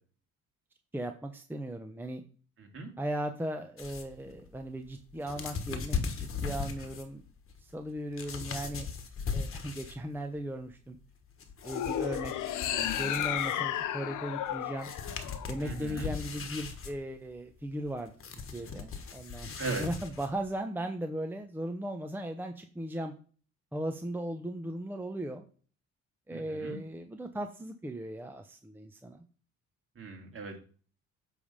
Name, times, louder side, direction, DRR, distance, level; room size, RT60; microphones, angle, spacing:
voice 1, 0.9-2.2 3.0-7.2 7.6-8.9 9.3-11.0 11.6-12.3 12.6-14.9 15.5-23.1 23.7-25.5 26.3-29.2, right 1 dB, 5° right, 5 dB, 0.7 m, -37 dB
voice 2, 2.6-2.9 15.6-16.1 19.6-19.9 26.3-26.8 30.0-30.6, right 3 dB, 45° right, 2 dB, 2.3 m, -38 dB
sound 1, 3.8-10.2 10.5-13.8 14.5-14.6 14.8-20.5, left 5 dB, 45° left, 1.3 m, -39 dB
sound 2, 11.6-16.0, left 11 dB, 80° left, 0.7 m, -33 dB
8.4 x 3.4 x 5.5 m, 0.40 s
cardioid pair, 90°, 30 cm